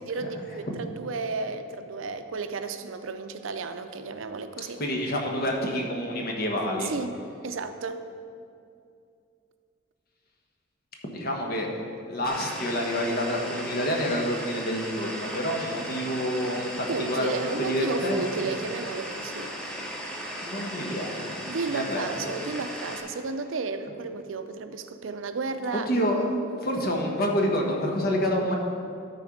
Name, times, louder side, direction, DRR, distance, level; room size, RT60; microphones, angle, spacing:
voice 1, 0.0-4.8 6.8-7.2 7.4-8.1 15.9-16.2 16.9-19.5 21.5-25.9, right 4 dB, 90° right, 9 dB, 0.5 m, -33 dB
voice 2, 4.8-6.9 11.1-11.7 12.1-17.3 17.7-18.2 20.4-21.3 21.7-22.3 25.9-26.3 26.6-28.6, equal, 55° left, 0 dB, 1.2 m, -28 dB
sound 1, 12.3-23.0, equal, 5° left, 0.9 m, -37 dB
12.5 x 4.4 x 5.1 m, 2.4 s
head